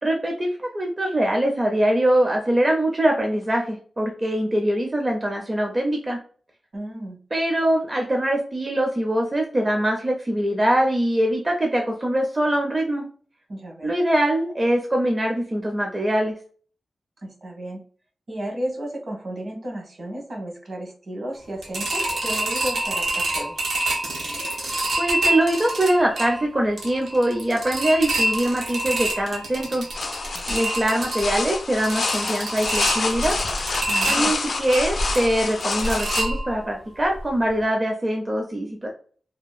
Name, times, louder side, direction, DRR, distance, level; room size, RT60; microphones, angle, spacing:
voice 1, 0.0-6.2 7.3-13.0 13.8-16.3 25.0-29.9 30.5-33.4 34.1-38.9, right 1 dB, 25° right, 1 dB, 0.5 m, -23 dB
voice 2, 6.7-7.2 13.5-13.9 17.2-17.8 18.3-23.6 30.3-30.7 33.9-34.3, right 1 dB, 55° right, 0 dB, 1.1 m, -33 dB
sound 1, 21.6-36.8 37.2-37.3 37.6-37.7, right 1 dB, 80° right, 0.7 m, -27 dB
sound 2, 29.9-36.2, left 3 dB, 60° left, 0.4 m, -27 dB
2.7 x 2.4 x 2.3 m, 0.44 s
wide cardioid pair, 110°, 0 cm